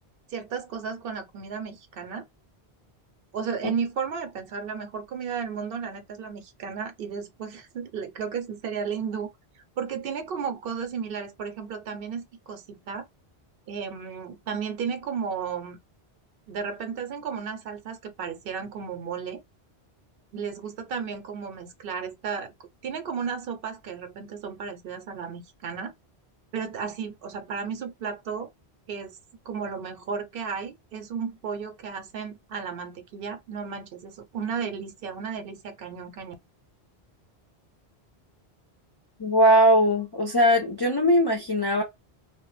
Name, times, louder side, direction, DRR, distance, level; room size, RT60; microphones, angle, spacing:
voice 1, 0.3-2.2 3.3-9.3 9.8-13.1 13.7-15.8 16.5-19.4 20.3-22.5 22.8-25.9 26.5-28.5 28.9-29.2 29.5-36.3, right 6 dB, 65° right, 0.7 m, -34 dB
voice 2, 39.2-41.8, equal, 40° left, 0.3 m, -20 dB
2.1 x 2.0 x 3.0 m
omnidirectional pair, 1.1 m